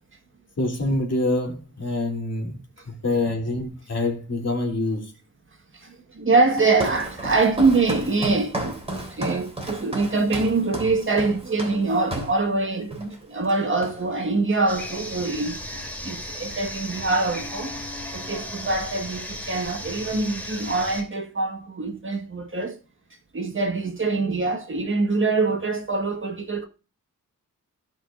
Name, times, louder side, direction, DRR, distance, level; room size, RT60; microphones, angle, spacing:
voice 1, 0.6-2.6 2.9-5.1, left 2 dB, 50° left, 3.2 m, -26 dB
voice 2, 5.7-8.8 9.1-17.8 18.1-22.8 23.3-26.7, right 3 dB, 35° right, 1.7 m, -24 dB
Walk footsteps, 6.5-12.4 12.9-13.2 13.4-14.3, right 1 dB, 20° right, 3.6 m, -33 dB
sound 1, 14.7-21.0, left 1 dB, 5° left, 3.1 m, -35 dB
16.5 x 5.7 x 2.6 m
wide cardioid pair, 120°, 33 cm